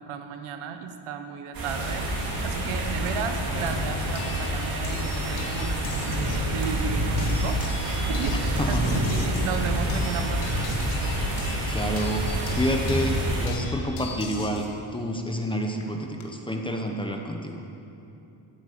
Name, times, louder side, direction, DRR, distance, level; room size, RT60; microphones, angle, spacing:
voice 1, 0.0-2.1 2.4-10.7, right 6 dB, 85° right, 7 dB, 1.2 m, -34 dB
sound 1, 1.5-13.5, right 1 dB, 45° right, 3.0 m, -27 dB
sound 2, 4.2-6.5 7.2-14.7 15.8-16.2, left 5 dB, 90° left, 1.8 m, -41 dB
voice 2, 11.7-14.7 14.9-17.6, equal, 10° left, 2 dB, 0.8 m, -29 dB
13.5 x 8.3 x 8.4 m, 2.8 s
cardioid pair, 180°, 49 cm